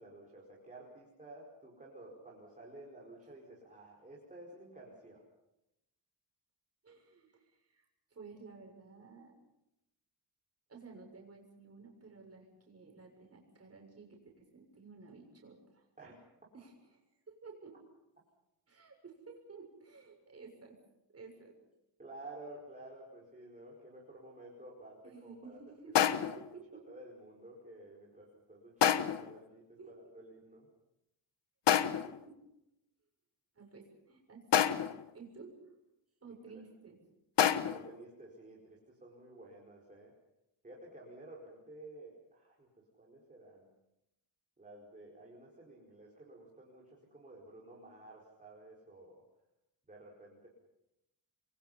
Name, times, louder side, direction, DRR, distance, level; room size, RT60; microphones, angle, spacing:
voice 1, 0.0-5.2 16.0-16.2 22.0-25.6 26.1-26.4 26.9-30.7 36.5-36.6 37.7-40.1 40.6-42.7 43.0-43.7 44.6-49.2 49.9-50.5, right 2 dB, 20° right, -3 dB, 5.1 m, -52 dB
voice 2, 6.8-7.9 8.1-9.3 10.7-15.9 16.5-17.0 17.3-17.8 18.7-20.8 21.1-21.6 25.0-26.8 29.8-30.1 31.8-32.4 33.6-35.5 36.2-37.0, right 4 dB, 35° right, 1 dB, 6.9 m, -53 dB
sound 1, 25.9-26.5 28.8-29.3 31.7-32.2 34.5-35.1 37.4-37.9, left 9 dB, 70° left, 1.3 m, -28 dB
29.5 x 23.0 x 5.8 m, 0.88 s
wide cardioid pair, 170°, 44 cm